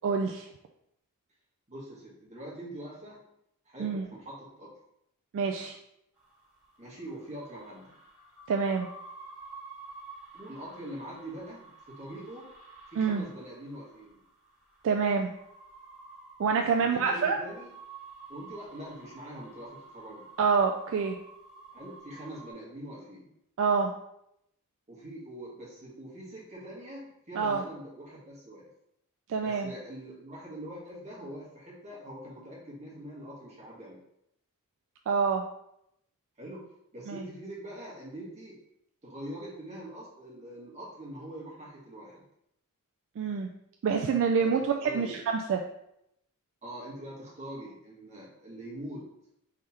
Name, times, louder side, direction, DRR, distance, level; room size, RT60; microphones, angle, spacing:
voice 1, 0.0-0.5 3.8-4.0 5.3-5.8 8.5-8.9 13.0-13.2 14.8-15.3 16.4-17.4 20.4-21.2 23.6-23.9 27.4-27.6 29.3-29.7 35.1-35.4 37.1-37.2 43.2-43.5 43.8-45.6, right 5 dB, 60° right, 3 dB, 0.3 m, -27 dB
voice 2, 1.7-3.2 3.6-4.7 6.8-7.9 10.3-12.5 12.9-14.2 16.8-17.7 18.3-20.2 21.7-23.3 24.9-28.7 29.4-34.0 36.4-36.6 36.9-38.6 39.0-42.2 44.4-44.5 44.8-45.2 46.6-49.0, right 1 dB, 30° right, -5 dB, 1.5 m, -43 dB
sound 1, 6.2-22.5, right 3 dB, 5° right, 1.6 m, -51 dB
3.7 x 3.2 x 4.2 m, 0.78 s
head